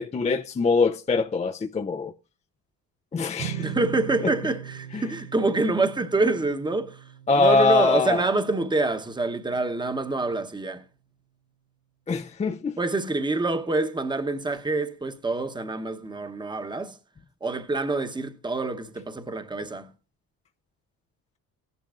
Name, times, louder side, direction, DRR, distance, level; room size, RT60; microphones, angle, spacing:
voice 1, 0.0-2.1 3.1-3.7 4.2-4.3 4.9-5.0 7.3-8.3 12.1-12.8, left 4 dB, 20° left, 0.4 m, -23 dB
sound 1, 3.4-9.8, right 9 dB, 90° right, 0.9 m, -40 dB
voice 2, 3.6-7.0 7.4-10.8 12.8-17.0 17.4-19.9, right 2 dB, 10° right, 0.9 m, -26 dB
16.5 x 10.5 x 2.4 m
cardioid pair, 100°, 39 cm